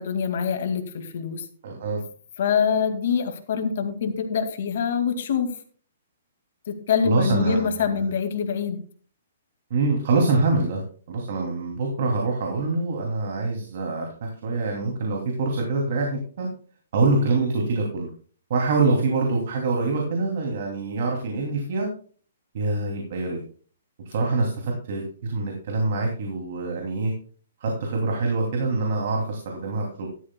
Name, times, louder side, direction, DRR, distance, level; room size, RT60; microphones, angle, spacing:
voice 1, 0.0-1.5 2.4-5.5 6.7-8.8, left 6 dB, 55° left, 7 dB, 2.1 m, -25 dB
voice 2, 1.6-2.0 7.0-8.1 9.7-16.5 16.9-18.1 18.5-21.9 22.5-23.4 24.0-27.1 27.6-30.1, right 3 dB, 50° right, 0 dB, 2.8 m, -25 dB
13.5 x 12.5 x 2.3 m, 0.43 s
hypercardioid pair, 165°, 0 cm